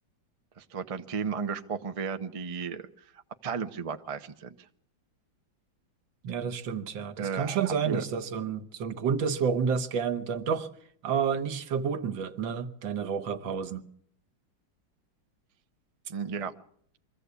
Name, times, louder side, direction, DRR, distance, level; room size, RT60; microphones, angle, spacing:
voice 1, 0.6-2.9 3.4-4.5 7.2-8.0 16.1-16.5, right 6 dB, 35° right, 0.5 m, -34 dB
voice 2, 6.2-10.7 11.0-13.9, right 6 dB, 80° right, 1.9 m, -30 dB
23.0 x 15.0 x 8.3 m
omnidirectional pair, 2.1 m